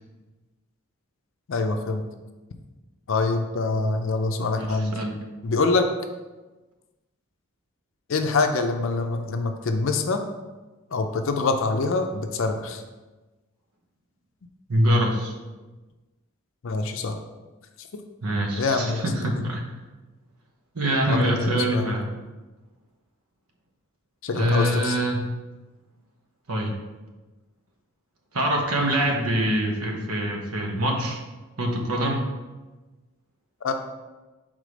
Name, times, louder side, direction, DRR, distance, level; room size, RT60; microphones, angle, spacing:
voice 1, 1.5-2.0 3.1-5.0 5.4-5.9 8.1-10.2 10.9-12.8 16.6-17.2 18.6-19.0 21.1-21.9 24.2-25.0 33.6-33.7, left 3 dB, 60° left, 6 dB, 0.5 m, -25 dB
voice 2, 4.6-5.1 14.7-15.3 18.2-19.6 20.7-22.1 24.3-25.3 26.5-26.7 28.3-31.2 31.6-32.2, right 1 dB, 85° right, 1 dB, 1.0 m, -24 dB
4.9 x 3.7 x 5.1 m, 1.2 s
head